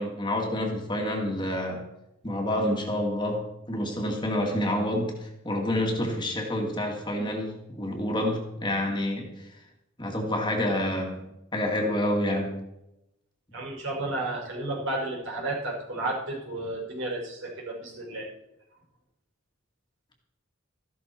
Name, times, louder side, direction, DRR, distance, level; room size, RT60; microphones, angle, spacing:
voice 1, 0.0-1.8 2.2-9.5 10.0-12.6, left 1 dB, 20° left, 1 dB, 2.0 m, -28 dB
voice 2, 13.5-18.3, right 2 dB, 65° right, -3 dB, 5.4 m, -32 dB
14.0 x 12.0 x 4.4 m, 0.88 s
head